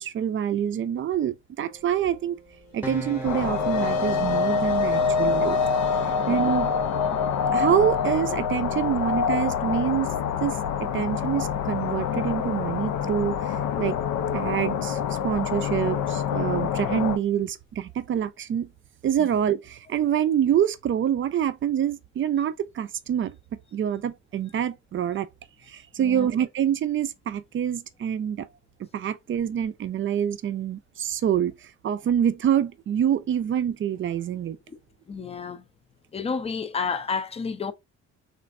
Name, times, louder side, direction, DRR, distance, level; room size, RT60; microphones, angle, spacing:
voice 1, 0.0-2.4 2.7-5.6 6.3-6.7 7.5-10.1 10.4-10.6 10.9-14.0 14.3-15.0 15.2-18.7 19.0-23.4 23.7-25.3 25.7-28.5 28.9-34.6, right 9 dB, 40° right, 0.4 m, -26 dB
sound 1, 1.6-7.0, right 3 dB, 5° right, 0.8 m, -40 dB
sound 2, 2.9-11.5, left 4 dB, 65° left, 0.8 m, -28 dB
sound 3, 3.2-17.2, left 8 dB, 85° left, 0.5 m, -27 dB
voice 2, 6.1-6.6 19.2-19.3 26.0-26.3 35.1-35.6 36.1-37.7, left 5 dB, 20° left, 0.4 m, -31 dB
3.2 x 2.4 x 2.4 m
cardioid pair, 90°, 30 cm